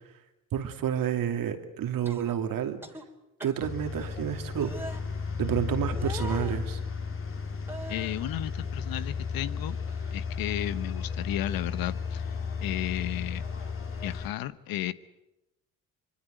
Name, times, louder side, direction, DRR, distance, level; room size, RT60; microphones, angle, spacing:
voice 1, 0.5-2.8 3.4-4.7 5.4-6.8, right 9 dB, 60° right, 7 dB, 2.9 m, -29 dB
sound 1, 2.0-2.4 2.8-3.0 3.4-3.7 4.6-5.0 5.9-6.6 7.7-8.3 8.7-9.6 9.9-10.1 10.6-11.3 12.6-12.8, right 1 dB, 5° right, 3.4 m, -44 dB
sound 2, 3.6-14.3, left 5 dB, 35° left, 3.3 m, -34 dB
voice 2, 7.9-9.8 10.1-12.4 12.6-13.4 14.0-14.9, left 14 dB, 60° left, 16 dB, 1.1 m, -33 dB
24.5 x 23.5 x 8.2 m, 0.93 s
hypercardioid pair, 60°, 39 cm